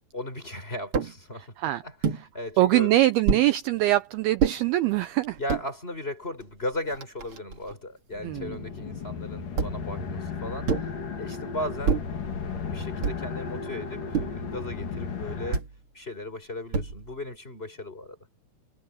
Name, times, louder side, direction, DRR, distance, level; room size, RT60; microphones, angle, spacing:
voice 1, 0.1-3.0 5.4-10.9 11.2-12.1 12.4-15.7 15.9-18.2, left 1 dB, 15° left, 5.2 m, -37 dB
sound 1, 0.9-1.2 2.0-2.3 3.3-3.5 4.4-4.6 5.3-5.7 6.4-6.5 6.7-7.7 9.6-9.9 10.7-11.0 11.8-12.2 13.0-13.4 14.1-14.5 15.5-15.8 16.7-17.2, right 6 dB, 40° right, 2.4 m, -27 dB
voice 2, 2.6-5.4 8.2-8.6, right 15 dB, 80° right, 2.3 m, -23 dB
sound 2, 8.1-15.6, left 5 dB, 50° left, 4.9 m, -35 dB
omnidirectional pair, 5.0 m